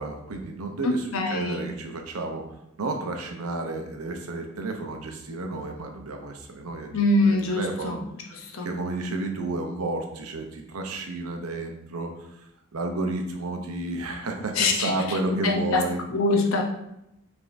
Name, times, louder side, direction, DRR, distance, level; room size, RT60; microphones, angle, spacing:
voice 1, 0.0-2.5 2.8-6.9 7.2-8.0 8.6-12.4 12.7-16.0, right 2 dB, 85° right, 4 dB, 0.7 m, -31 dB
voice 2, 0.8-1.6 6.9-8.0 8.3-8.7 14.5-15.8 16.1-16.6, left 2 dB, 70° left, 1 dB, 0.8 m, -24 dB
5.1 x 3.5 x 2.6 m, 0.84 s
head